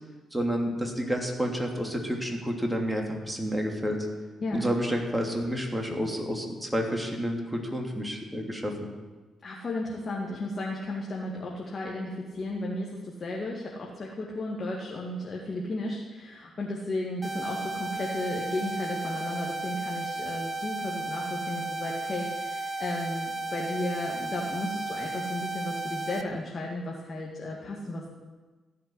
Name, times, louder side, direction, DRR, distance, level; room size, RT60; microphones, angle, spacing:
voice 1, 0.3-4.1 4.5-8.7, equal, 10° right, 1 dB, 3.0 m, -30 dB
voice 2, 9.4-28.1, left 2 dB, 40° left, -3 dB, 2.2 m, -34 dB
sound 1, 17.2-26.2, right 2 dB, 30° right, 1.2 m, -34 dB
15.0 x 5.8 x 9.7 m, 1.3 s
figure-of-eight pair, 40°, 0 cm